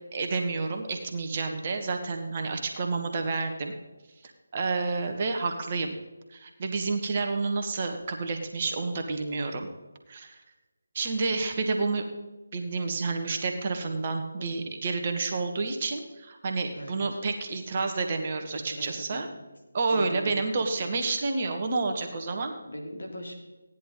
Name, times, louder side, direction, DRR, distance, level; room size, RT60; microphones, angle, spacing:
voice 1, 0.1-3.7 4.5-5.9 6.3-9.7 10.1-10.4 10.9-12.1 12.5-19.3 19.7-22.5, right 3 dB, 35° right, 4 dB, 1.3 m, -29 dB
voice 2, 14.4-14.8 16.7-17.2 18.5-19.4 19.9-20.7 22.7-23.4, equal, 65° left, 0 dB, 3.1 m, -41 dB
16.0 x 10.5 x 4.1 m, 1.1 s
figure-of-eight pair, 155°, 0 cm